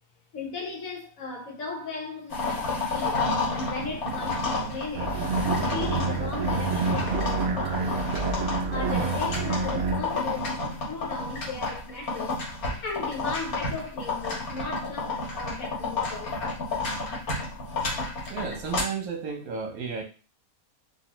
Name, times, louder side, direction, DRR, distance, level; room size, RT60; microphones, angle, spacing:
voice 1, 0.3-3.2 3.5-5.2 5.7-7.9 8.7-12.4 12.8-16.4, left 4 dB, 70° left, 1.4 m, -36 dB
sound 1, 2.3-18.8, left 3 dB, 90° left, 1.8 m, -31 dB
sound 2, 3.6-10.8, left 2 dB, 25° left, 0.5 m, -48 dB
sound 3, 5.0-10.0, right 4 dB, 65° right, 0.9 m, -28 dB
voice 2, 18.2-20.0, right 5 dB, 80° right, 1.4 m, -33 dB
4.2 x 2.7 x 3.0 m
omnidirectional pair, 1.5 m